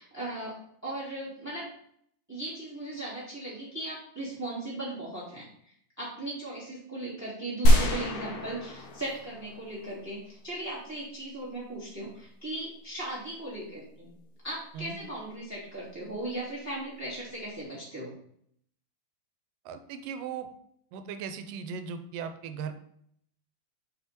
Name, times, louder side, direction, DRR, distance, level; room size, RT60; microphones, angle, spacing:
voice 1, 0.0-1.7 2.3-5.5 6.0-14.1 14.4-18.1, right 1 dB, 5° right, -8 dB, 2.3 m, -37 dB
sound 1, 7.7-9.9, right 1 dB, 65° left, 2.5 m, -24 dB
voice 2, 19.7-20.5 20.9-22.7, right 6 dB, 85° right, 8 dB, 2.3 m, -37 dB
5.9 x 5.8 x 4.4 m, 0.67 s
omnidirectional pair, 3.8 m